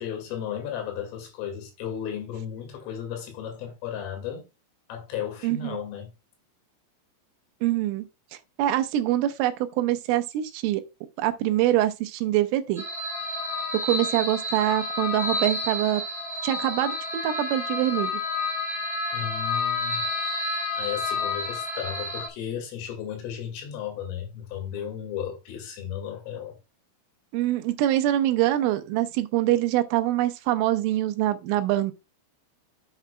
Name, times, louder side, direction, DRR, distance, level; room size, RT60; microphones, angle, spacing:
voice 1, 0.0-4.5 4.9-6.1 19.1-20.1 20.8-26.6, left 9 dB, 85° left, 4.6 m, -34 dB
voice 2, 5.4-5.8 7.6-8.1 8.6-10.8 11.2-12.8 13.8-16.0 16.4-18.1 27.3-31.9, right 13 dB, 85° right, 3.3 m, -24 dB
sound 1, 12.8-22.3, left 3 dB, ahead, 2.6 m, -30 dB
11.0 x 7.1 x 2.2 m
omnidirectional pair, 5.7 m